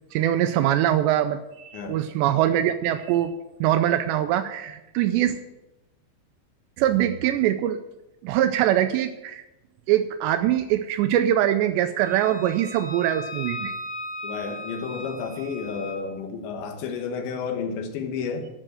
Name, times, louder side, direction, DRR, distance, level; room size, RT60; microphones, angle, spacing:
voice 1, 0.1-3.3 3.6-5.4 6.8-7.8 8.2-9.4 9.9-13.7, right 12 dB, 80° right, 9 dB, 2.6 m, -23 dB
voice 2, 1.7-2.0 14.2-18.5, left 5 dB, 75° left, 6 dB, 3.4 m, -31 dB
Wind instrument woodwind instrument, 12.0-16.0, left 1 dB, 40° right, 0.8 m, -37 dB
12.0 x 6.5 x 7.7 m, 0.97 s
omnidirectional pair, 5.4 m